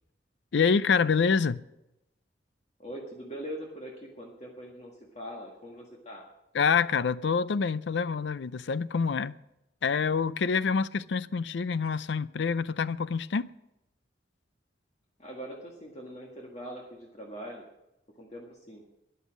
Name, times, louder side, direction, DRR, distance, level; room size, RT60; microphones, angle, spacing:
voice 1, 0.5-1.6 6.5-9.3 9.8-13.5, left 5 dB, 75° left, 0.5 m, -26 dB
voice 2, 2.8-6.2 15.2-17.6 18.2-18.8, equal, 35° left, 1.7 m, -42 dB
13.5 x 10.0 x 6.2 m
head